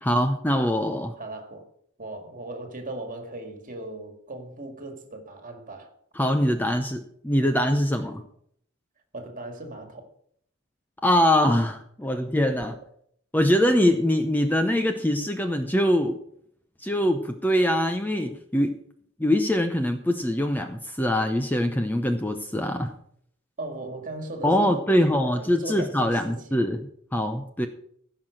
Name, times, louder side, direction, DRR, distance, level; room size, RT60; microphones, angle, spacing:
voice 1, 0.0-1.1 6.2-8.2 11.0-12.8 13.3-16.2 16.8-18.8 19.2-22.9 24.4-26.8 27.1-27.7, equal, 10° left, 0.7 m, -23 dB
voice 2, 1.2-1.7 2.0-5.9 9.1-10.1 23.6-26.6, right 2 dB, 40° right, 2.0 m, -38 dB
15.0 x 5.8 x 6.4 m
head